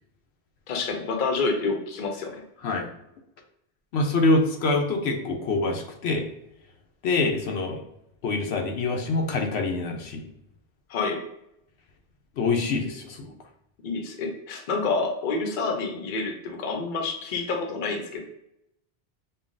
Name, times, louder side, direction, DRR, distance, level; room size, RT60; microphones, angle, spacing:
voice 1, 0.7-2.4 10.9-11.2 13.8-18.2, left 4 dB, 55° left, 4 dB, 0.7 m, -28 dB
voice 2, 3.9-6.2 7.0-7.8 8.2-10.3 12.4-13.2, left 3 dB, 85° left, 3 dB, 0.9 m, -25 dB
5.3 x 2.3 x 2.5 m, 0.80 s
omnidirectional pair, 1.1 m